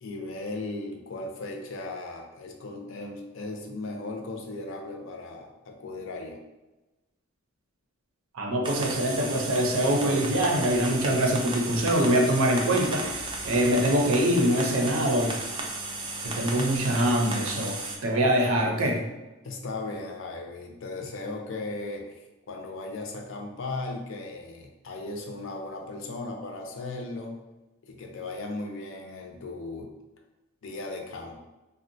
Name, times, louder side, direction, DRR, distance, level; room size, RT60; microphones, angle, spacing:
voice 1, 0.0-6.4 19.4-27.4 27.8-29.9 30.6-31.4, left 2 dB, 65° left, 3 dB, 0.5 m, -37 dB
voice 2, 8.3-15.3 16.2-17.8 18.0-19.0, right 1 dB, 75° right, 1 dB, 0.5 m, -24 dB
sound 1, 8.6-18.0, right 2 dB, 25° right, 0.3 m, -34 dB
3.6 x 2.1 x 2.6 m, 1.1 s
head